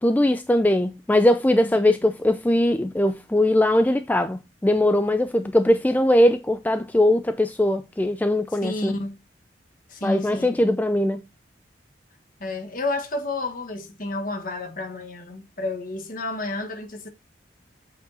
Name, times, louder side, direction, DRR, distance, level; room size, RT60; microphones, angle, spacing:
voice 1, 0.0-8.9 10.0-11.2, left 1 dB, 10° left, 0.3 m, -20 dB
voice 2, 8.6-9.2 9.9-10.6 12.4-17.1, left 2 dB, 50° left, 1.3 m, -30 dB
8.1 x 4.7 x 2.7 m
head